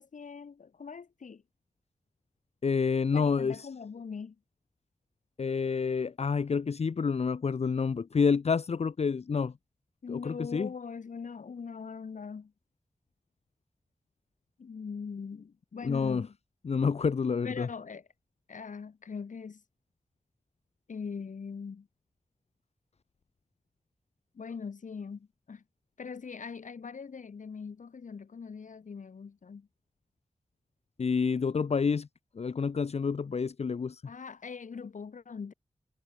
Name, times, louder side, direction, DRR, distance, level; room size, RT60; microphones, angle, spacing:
voice 1, 0.0-1.4 3.1-4.4 10.0-12.5 14.6-16.4 17.4-18.0 18.5-19.6 20.9-21.9 24.3-25.6 26.0-29.7 34.0-35.5, left 5 dB, 85° left, 2.8 m, -41 dB
voice 2, 2.6-3.7 5.4-9.5 10.1-10.7 15.8-16.2 16.6-17.7 31.0-32.1 32.4-34.0, left 5 dB, 55° left, 0.6 m, -28 dB
cardioid pair, 45°, 13 cm